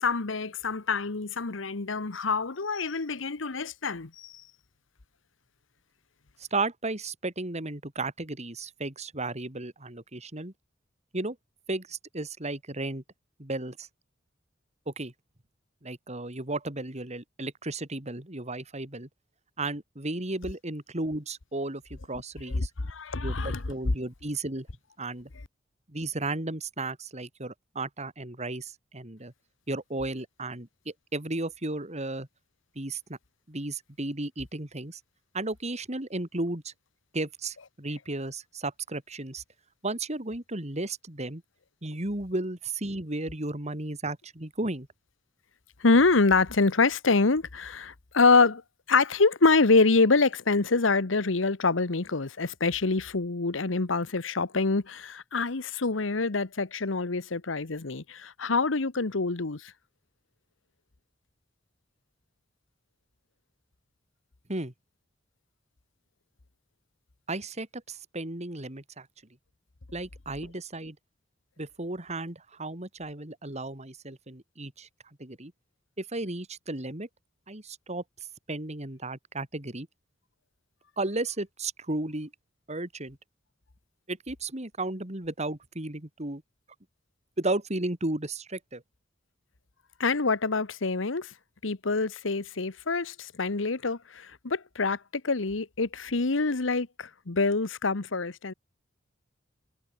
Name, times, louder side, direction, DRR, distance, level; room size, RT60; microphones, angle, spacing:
voice 1, 0.0-4.3 22.5-23.6 45.8-48.6 48.9-59.7 90.0-91.3 91.6-95.0 95.2-98.5, left 3 dB, 90° left, 1.2 m, -26 dB
voice 2, 6.5-10.5 11.1-11.4 11.7-13.0 13.4-13.9 14.9-15.1 15.8-19.1 19.6-22.7 23.2-24.7 25.0-25.3 25.9-29.3 29.7-32.3 32.7-33.2 33.5-35.0 35.3-36.7 37.1-39.4 39.8-41.4 41.8-44.9 64.5-64.7 67.3-69.1 69.9-70.9 71.6-74.9 75.2-75.5 76.0-77.1 77.5-78.0 78.5-79.9 81.0-82.3 82.7-83.2 84.1-86.4 87.4-88.8, right 2 dB, 35° right, 3.2 m, -34 dB
head